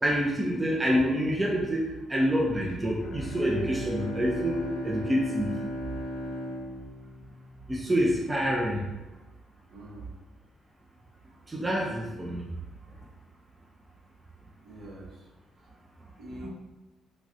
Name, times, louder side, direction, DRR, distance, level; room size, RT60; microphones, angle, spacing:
voice 1, 0.0-1.8 2.1-5.5 7.7-8.9 11.5-12.5 16.4-16.5, equal, 15° right, -3 dB, 0.4 m, -27 dB
Bowed string instrument, 2.9-7.9, left 1 dB, 85° left, 0.3 m, -37 dB
voice 2, 9.7-10.2 14.6-15.3 15.6-15.7 16.2-16.5, equal, 60° right, -2 dB, 0.8 m, -45 dB
3.1 x 2.5 x 2.6 m, 1.2 s
cardioid pair, 120°, 0 cm